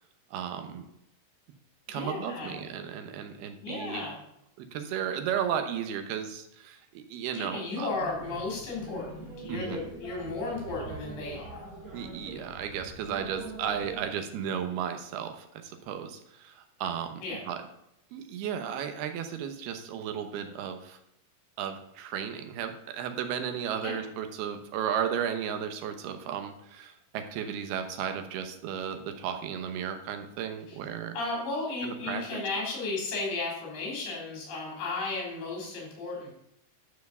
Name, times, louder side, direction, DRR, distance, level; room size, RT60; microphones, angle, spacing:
voice 1, 0.3-0.9 1.9-4.0 4.6-7.9 9.5-9.8 11.9-17.6 18.1-21.0 21.6-31.2 31.8-32.4, right 8 dB, 80° right, 7 dB, 3.0 m, -34 dB
voice 2, 1.9-2.6 3.6-4.2 7.3-11.6 17.2-17.4 23.8-24.0 30.7-30.8 31.1-36.3, left 3 dB, 85° left, -2 dB, 5.8 m, -34 dB
sound 1, 7.9-14.1, right 2 dB, 25° right, 2.5 m, -43 dB
12.0 x 4.5 x 6.8 m, 0.79 s
omnidirectional pair, 4.5 m